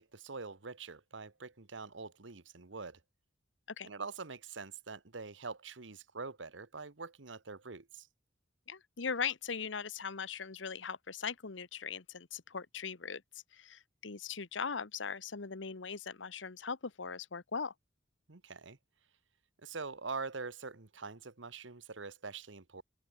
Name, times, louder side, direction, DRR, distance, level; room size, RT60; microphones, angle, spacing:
voice 1, 0.0-3.0 3.8-8.1 18.3-18.8 19.6-22.8, right 4 dB, 85° right, 1.3 m, -44 dB
voice 2, 8.7-13.2 13.5-17.7, left 6 dB, 85° left, 1.1 m, -39 dB
open air
head